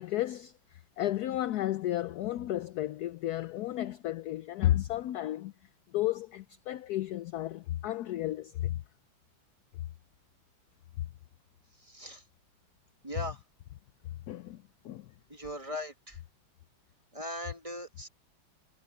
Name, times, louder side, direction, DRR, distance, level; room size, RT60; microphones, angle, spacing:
voice 1, 0.0-5.5 5.9-8.8 14.3-15.1, left 14 dB, 75° left, 0.9 m, -33 dB
voice 2, 11.8-12.2 13.0-13.4 15.3-16.2 17.1-18.1, equal, 15° right, 1.8 m, -39 dB
omnidirectional pair, 2.1 m